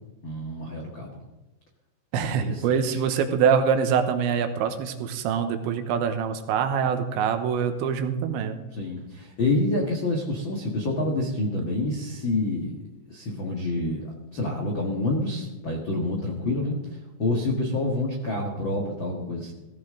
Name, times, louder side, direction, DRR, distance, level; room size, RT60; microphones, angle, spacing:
voice 1, 0.2-1.2 2.2-3.0 8.7-12.8 13.1-16.8 17.2-19.5, left 2 dB, 80° left, -1 dB, 1.0 m, -28 dB
voice 2, 2.1-8.6, right 7 dB, 90° right, 7 dB, 3.3 m, -24 dB
17.0 x 15.0 x 3.8 m, 1.0 s
omnidirectional pair, 5.2 m